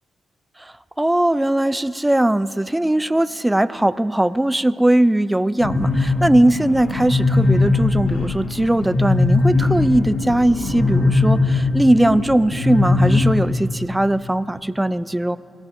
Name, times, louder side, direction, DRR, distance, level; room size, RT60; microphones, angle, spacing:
voice 1, 0.6-15.4, right 1 dB, 10° right, 15 dB, 0.3 m, -19 dB
sound 1, 5.6-13.3, left 3 dB, 90° left, 1.5 m, -20 dB
22.0 x 16.0 x 2.6 m, 2.9 s
cardioid pair, 65°, 0 cm